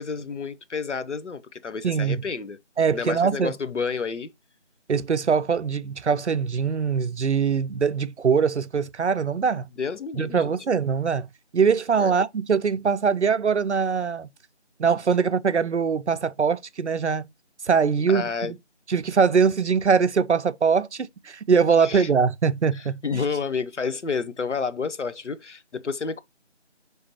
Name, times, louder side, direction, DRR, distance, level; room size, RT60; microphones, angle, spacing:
voice 1, 0.0-2.6 2.9-4.3 9.8-10.5 12.0-12.1 18.1-18.5 21.8-22.1 22.7-26.2, left 5 dB, 80° left, 0.7 m, -30 dB
voice 2, 1.8-2.2 2.8-3.5 4.9-9.7 10.2-11.3 11.5-14.3 14.8-17.2 17.6-18.6 18.9-23.2, right 6 dB, 75° right, 0.5 m, -22 dB
5.4 x 3.3 x 2.9 m
figure-of-eight pair, 175°, 35 cm